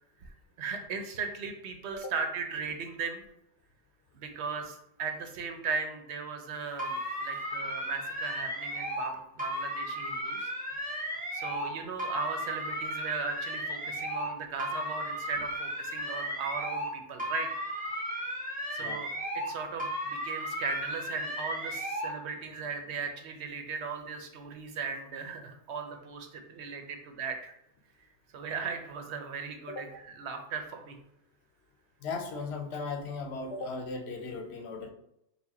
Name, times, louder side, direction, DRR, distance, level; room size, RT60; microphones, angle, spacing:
voice 1, 0.2-3.2 4.1-10.5 11.1-17.5 18.7-27.5 28.3-31.0, right 5 dB, 90° right, 5 dB, 0.9 m, -37 dB
sound 1, 6.8-9.1 9.4-11.7 12.0-14.3 14.6-16.9 17.2-19.5 19.8-22.1, equal, 10° right, 0.7 m, -35 dB
voice 2, 32.0-34.9, left 3 dB, 85° left, 5 dB, 0.9 m, -37 dB
4.2 x 2.2 x 4.1 m, 0.81 s
omnidirectional pair, 1.1 m